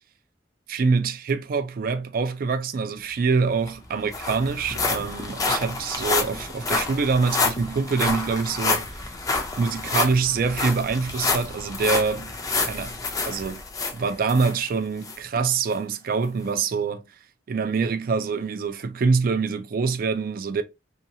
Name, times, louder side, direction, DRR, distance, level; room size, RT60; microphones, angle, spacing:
voice 1, 0.7-9.0 9.6-12.3 12.6-13.0 13.2-13.6 13.9-17.0 17.5-20.6, right 4 dB, 55° right, 0.3 m, -25 dB
sound 1, 3.3-3.4 3.7-14.5 15.0-15.2 15.7-15.8, left 3 dB, 20° left, 0.4 m, -28 dB
2.8 x 2.3 x 2.7 m
head